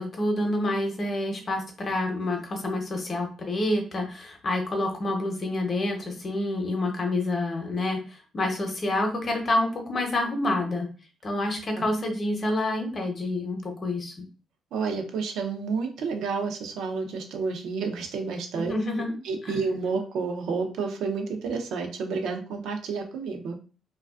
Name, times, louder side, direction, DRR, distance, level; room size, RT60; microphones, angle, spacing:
voice 1, 0.0-10.9 11.2-14.2 18.7-19.2 19.4-19.6, left 1 dB, 40° left, 3 dB, 0.7 m, -28 dB
voice 2, 14.7-18.7 19.2-23.6, right 4 dB, 80° right, 5 dB, 0.5 m, -30 dB
2.4 x 2.3 x 2.3 m, 0.37 s
cardioid pair, 90°, 0 cm